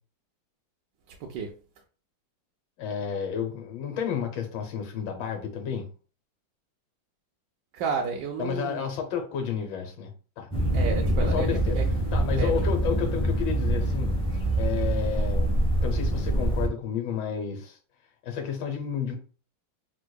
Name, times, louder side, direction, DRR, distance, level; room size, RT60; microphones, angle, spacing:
voice 1, 1.1-1.5 7.7-8.9 10.7-11.9 12.4-12.7, right 4 dB, 75° right, 1.1 m, -32 dB
voice 2, 2.8-5.9 8.4-10.1 10.4-10.5 11.2-11.8 12.1-14.1 14.6-17.8 18.2-19.2, left 7 dB, 85° left, 1.5 m, -31 dB
sound 1, 10.5-16.7, right 1 dB, 5° left, 0.4 m, -25 dB
3.6 x 3.1 x 2.2 m
omnidirectional pair, 2.0 m